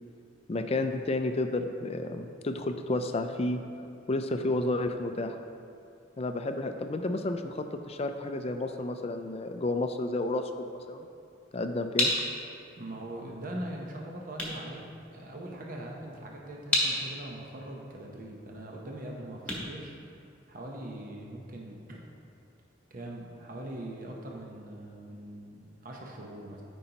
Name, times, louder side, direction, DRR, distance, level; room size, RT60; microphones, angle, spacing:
voice 1, 0.5-3.6 4.1-5.4 6.2-11.1 11.5-12.1, left 2 dB, 30° left, 7 dB, 0.4 m, -31 dB
sound 1, 11.3-20.7, left 1 dB, 5° left, 1.4 m, -34 dB
voice 2, 12.8-14.8 15.1-20.2 20.5-22.2 22.9-26.6, right 1 dB, 45° right, -1 dB, 0.8 m, -41 dB
13.0 x 5.4 x 2.9 m, 2.5 s
head